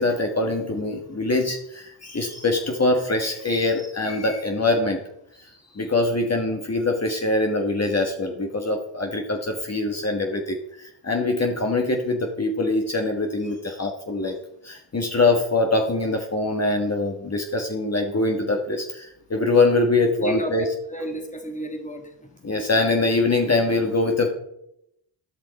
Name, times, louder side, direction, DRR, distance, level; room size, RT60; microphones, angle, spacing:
voice 1, 0.0-5.0 5.7-14.3 14.6-20.6 22.4-24.3, left 2 dB, 30° left, 2 dB, 1.6 m, -23 dB
voice 2, 20.2-22.3, equal, 15° left, 5 dB, 1.8 m, -33 dB
13.0 x 5.7 x 4.2 m, 0.78 s
cardioid pair, 60°, 50 cm